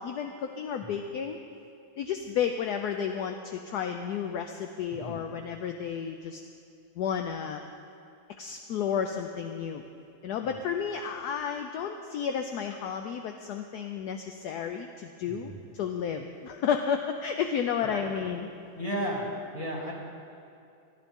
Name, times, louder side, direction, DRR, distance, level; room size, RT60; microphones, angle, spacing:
voice 1, 0.0-1.4 2.0-6.4 7.0-7.6 8.4-9.8 10.2-18.5, left 7 dB, 70° left, 5 dB, 1.0 m, -32 dB
voice 2, 15.2-15.5 17.8-18.2 18.8-19.3 19.5-19.9, equal, 15° left, -5 dB, 2.9 m, -34 dB
21.5 x 13.0 x 3.6 m, 2.6 s
omnidirectional pair, 2.1 m